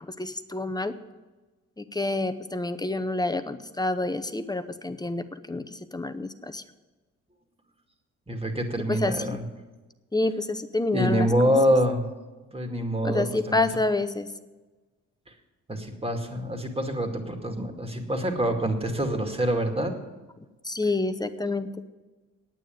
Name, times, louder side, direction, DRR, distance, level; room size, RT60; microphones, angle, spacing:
voice 1, 0.1-0.9 1.8-6.6 8.9-9.4 10.1-11.5 13.0-14.3 20.6-21.8, left 2 dB, 15° left, 10 dB, 0.8 m, -28 dB
voice 2, 8.3-9.4 10.9-12.1 12.5-13.7 15.7-19.9, equal, 20° right, 4 dB, 2.3 m, -26 dB
9.1 x 9.1 x 9.4 m, 1.2 s
cardioid pair, 90°, 30 cm